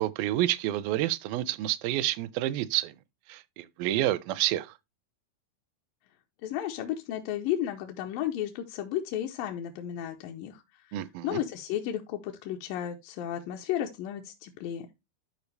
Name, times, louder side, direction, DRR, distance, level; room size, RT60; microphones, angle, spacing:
voice 1, 0.0-2.9 3.3-4.7 10.9-11.4, right 14 dB, 80° right, 2.2 m, -29 dB
voice 2, 6.4-14.9, left 11 dB, 80° left, 2.2 m, -33 dB
12.0 x 4.5 x 3.3 m
omnidirectional pair, 4.4 m